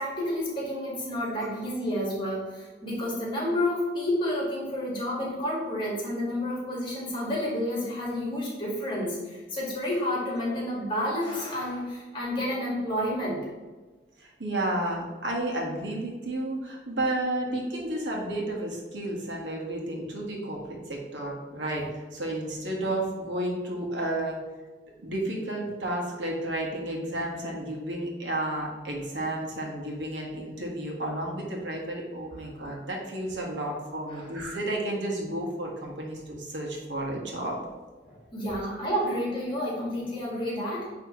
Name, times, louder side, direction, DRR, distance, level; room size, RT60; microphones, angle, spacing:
voice 1, 0.0-13.4 34.1-34.3 38.1-40.9, left 1 dB, 25° left, -4 dB, 1.9 m, -30 dB
voice 2, 14.2-24.4 25.0-37.6, right 1 dB, 85° right, -1 dB, 1.5 m, -32 dB
9.4 x 3.3 x 3.1 m, 1.3 s
head